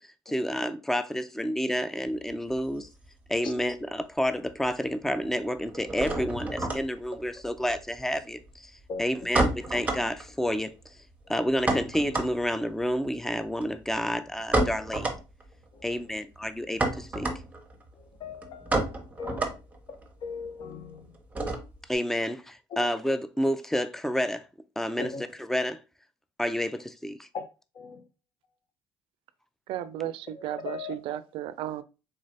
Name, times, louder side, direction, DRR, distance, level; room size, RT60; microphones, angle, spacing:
voice 1, 0.3-2.9 3.3-10.7 11.3-15.1 15.8-17.3 21.9-24.5 24.8-25.1 25.4-25.8 26.4-27.3, equal, 5° left, 0.4 m, -29 dB
sound 1, 2.1-3.7 4.0-4.7 4.9-21.9, right 2 dB, 15° right, 0.9 m, -32 dB
voice 2, 18.0-19.6 20.2-21.1 22.7-22.9 25.0-25.2 27.3-27.4 27.7-28.0 30.5-30.9, left 5 dB, 55° left, 0.7 m, -39 dB
voice 3, 29.7-31.8, right 12 dB, 80° right, 0.4 m, -34 dB
3.9 x 2.6 x 3.2 m
cardioid pair, 95°, 9 cm